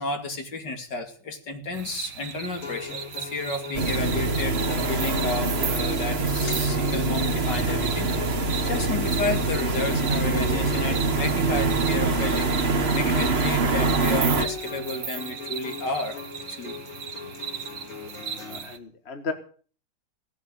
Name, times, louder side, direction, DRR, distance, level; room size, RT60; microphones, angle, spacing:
voice 1, 0.0-12.5 13.0-16.2 16.5-16.8, left 3 dB, 55° left, 5 dB, 3.0 m, -32 dB
sound 1, 1.7-18.8, right 7 dB, 55° right, 1.8 m, -37 dB
Acoustic guitar, 2.6-18.6, left 5 dB, 90° left, 4.4 m, -39 dB
sound 2, 3.7-14.4, right 3 dB, 35° right, 1.5 m, -24 dB
voice 2, 18.3-19.3, left 4 dB, 35° left, 7 dB, 1.6 m, -34 dB
18.0 x 8.0 x 8.2 m, 0.43 s
omnidirectional pair, 2.3 m